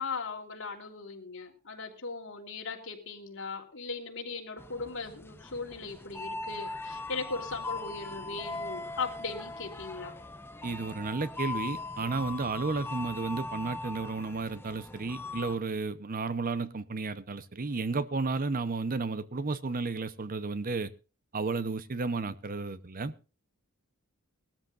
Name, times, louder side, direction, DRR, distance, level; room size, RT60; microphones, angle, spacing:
voice 1, 0.0-10.2, left 4 dB, 60° left, 2 dB, 3.1 m, -38 dB
sound 1, 4.6-15.6, left 2 dB, 10° left, 0.8 m, -40 dB
voice 2, 10.6-20.9 21.3-23.1, right 3 dB, 40° right, 15 dB, 0.8 m, -33 dB
21.0 x 13.0 x 2.5 m, 0.32 s
head